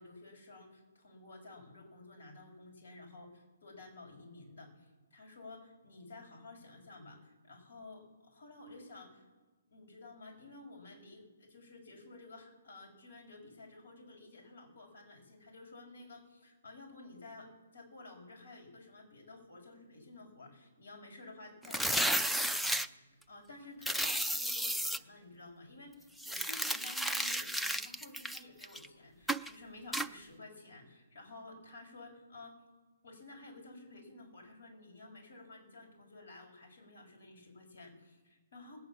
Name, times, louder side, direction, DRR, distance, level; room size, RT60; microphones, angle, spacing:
voice 1, 0.0-9.3 9.7-32.6 33.0-38.8, left 2 dB, 75° left, 2 dB, 5.9 m, -53 dB
sound 1, 21.6-22.9 23.8-25.0 26.2-28.9 29.3-29.5 29.9-30.1, equal, ahead, 0.4 m, -33 dB
20.5 x 9.3 x 7.2 m, 1.3 s
hypercardioid pair, 160°, 0 cm